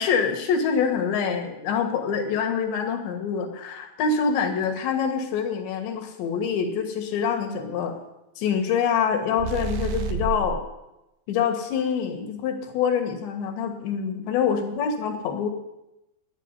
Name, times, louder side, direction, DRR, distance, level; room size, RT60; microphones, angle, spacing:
voice 1, 0.0-8.0 8.4-10.6 11.3-15.5, left 6 dB, 70° left, 5 dB, 3.6 m, -25 dB
sound 1, 9.4-10.6, right 6 dB, 80° right, 2.0 m, -29 dB
9.8 x 9.2 x 9.7 m, 0.92 s
omnidirectional pair, 5.4 m